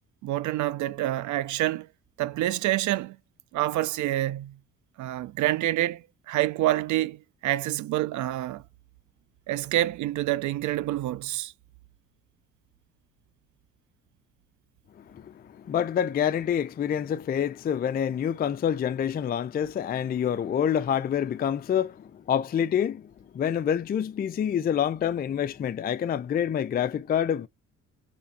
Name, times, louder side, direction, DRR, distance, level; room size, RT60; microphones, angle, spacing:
voice 1, 0.2-1.9 2.2-3.2 3.5-4.6 5.0-8.6 9.5-11.5, right 15 dB, 75° right, 0.5 m, -27 dB
voice 2, 15.0-27.5, left 9 dB, 30° left, 0.4 m, -27 dB
3.2 x 2.6 x 4.0 m
cardioid pair, 90°, 30 cm